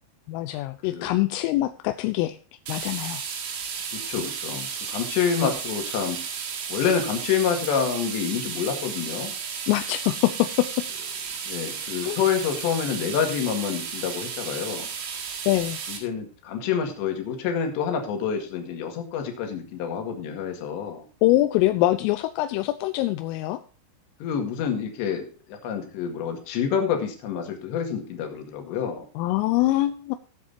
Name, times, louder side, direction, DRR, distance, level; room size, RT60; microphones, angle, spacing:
voice 1, 0.3-2.4 2.7-3.2 5.4-5.5 9.7-10.7 12.0-12.2 15.5-15.8 21.2-23.6 29.2-30.2, left 16 dB, 85° left, 9 dB, 3.2 m, -24 dB
sound 1, 2.7-16.0, right 6 dB, 80° right, 4.6 m, -33 dB
voice 2, 3.9-6.2 6.7-9.3 11.5-14.9 15.9-21.0 24.2-29.0, left 7 dB, 65° left, 3 dB, 4.0 m, -28 dB
19.0 x 7.6 x 2.8 m, 0.38 s
omnidirectional pair, 5.8 m